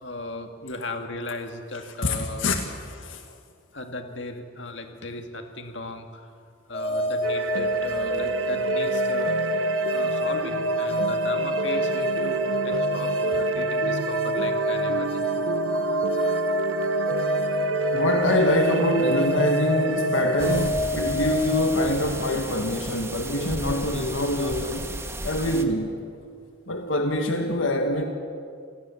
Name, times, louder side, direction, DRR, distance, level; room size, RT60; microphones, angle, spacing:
voice 1, 0.0-2.5 3.7-6.2 6.7-9.4 9.9-15.2, left 2 dB, 65° left, 2.0 m, -36 dB
voice 2, 2.0-3.2 17.9-24.9 25.2-25.9 26.7-28.1, left 1 dB, 80° left, 1.7 m, -25 dB
sound 1, 6.7-21.7, equal, 30° left, 4.4 m, -27 dB
sound 2, 7.2-20.7, right 5 dB, 75° right, 0.6 m, -30 dB
sound 3, 20.4-25.6, right 1 dB, 15° right, 1.4 m, -34 dB
28.0 x 18.5 x 7.1 m
head